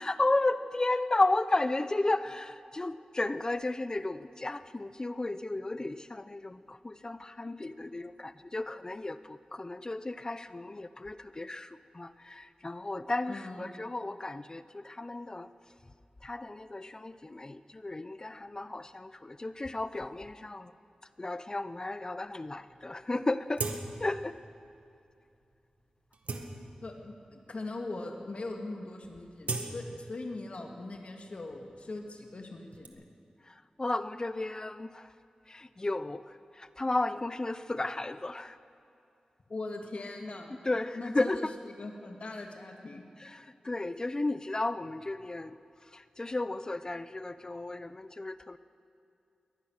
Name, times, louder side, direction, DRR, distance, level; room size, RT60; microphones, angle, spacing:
voice 1, 0.0-15.5 16.2-20.7 21.2-23.7 24.0-24.4 33.5-35.1 35.5-38.6 40.6-41.5 43.2-45.6 45.9-48.6, left 2 dB, 30° left, 13 dB, 0.7 m, -33 dB
voice 2, 13.3-13.7 26.8-33.0 39.5-40.6 40.9-43.0, left 2 dB, 60° left, 3 dB, 2.4 m, -40 dB
Guitar string snap or breaks - various sounds, 22.8-22.9 23.5-24.2 24.6-24.8 25.4-25.6 26.0-27.1 27.8-27.9 28.2-28.5 28.8-30.6 30.9-32.9, right 3 dB, 80° right, 1.8 m, -39 dB
23.0 x 19.0 x 6.6 m, 2.6 s
wide cardioid pair, 95°, 2 cm